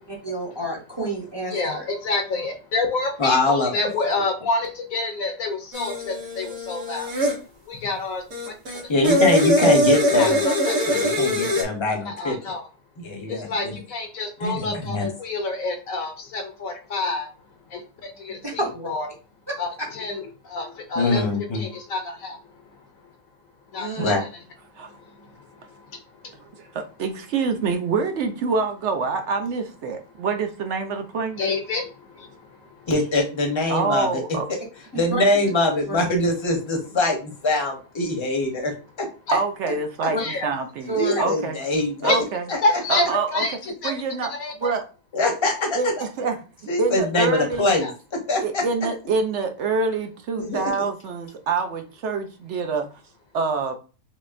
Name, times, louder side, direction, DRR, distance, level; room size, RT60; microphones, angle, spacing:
voice 1, 0.1-1.8 18.4-18.9 19.5-19.6 23.8-24.1 35.1-35.2 35.9-36.0 40.1-40.2 40.9-41.3, right 2 dB, 25° right, -1 dB, 0.7 m, -29 dB
voice 2, 1.5-7.1 7.7-8.2 9.0-9.2 10.1-11.1 12.0-12.6 13.3-17.3 17.7-19.1 19.6-21.3 21.5-23.1 23.7-24.1 24.8-26.8 31.4-32.9 39.3-39.4 40.2-40.5 41.0-41.2 42.0-42.2 42.6-43.9 44.3-44.7 47.8-47.9, left 3 dB, 65° left, 4 dB, 1.1 m, -28 dB
voice 3, 3.2-3.9 8.7-10.4 10.9-12.4 13.0-13.7 14.4-15.0 20.9-21.6 24.0-24.2 32.9-34.2 34.9-38.7 39.3-39.4 41.0-42.1 45.1-45.8 46.7-48.9 50.4-50.7, left 2 dB, 25° left, 2 dB, 0.7 m, -23 dB
sound 1, 5.7-7.4 8.3-11.6, equal, 90° right, 1.6 m, -22 dB
voice 4, 26.2-31.4 33.7-34.5 39.3-41.6 42.0-42.4 42.9-43.4 43.8-44.3 44.6-44.8 45.7-46.4 46.8-47.7 48.4-52.9 53.3-53.8, right 4 dB, 65° right, 6 dB, 0.8 m, -26 dB
6.0 x 2.1 x 2.5 m, 0.34 s
omnidirectional pair, 1.6 m